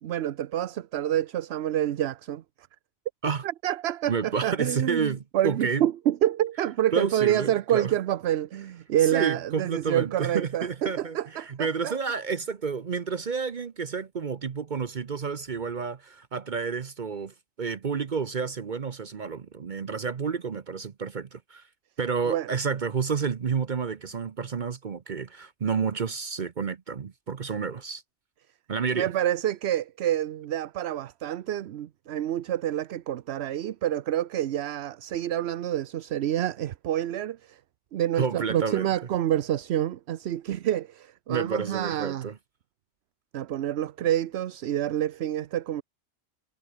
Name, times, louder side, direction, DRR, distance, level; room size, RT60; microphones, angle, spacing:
voice 1, 0.0-2.7 3.4-11.9 22.3-22.5 28.9-37.6 37.9-42.3 43.3-45.8, right 12 dB, 70° right, 0.9 m, -28 dB
voice 2, 4.1-5.8 6.9-7.9 9.1-21.7 22.0-28.0 28.7-29.1 38.2-38.9 41.3-42.4, right 5 dB, 45° right, 0.9 m, -30 dB
omnidirectional pair, 1.2 m